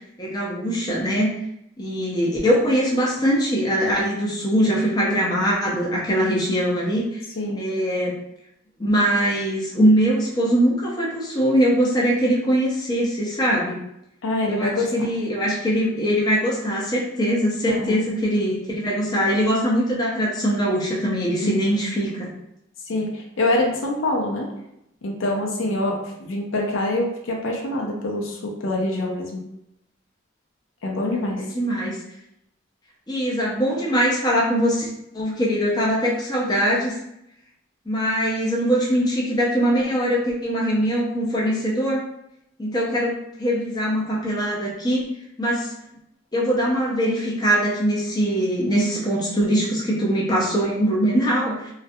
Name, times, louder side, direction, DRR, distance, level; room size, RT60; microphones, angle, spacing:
voice 1, 0.2-1.3 1.8-7.2 7.6-8.1 8.8-13.8 14.5-22.3 31.1-32.0 33.1-34.9 35.1-36.9 37.9-42.0 42.6-45.1 45.4-45.7 46.3-51.7, equal, 20° left, -4 dB, 0.5 m, -22 dB
voice 2, 14.2-15.1 17.7-18.0 21.4-21.8 22.8-24.5 25.0-29.4 30.8-31.5, left 1 dB, 85° left, 0 dB, 0.5 m, -25 dB
2.3 x 2.1 x 2.6 m, 0.81 s
head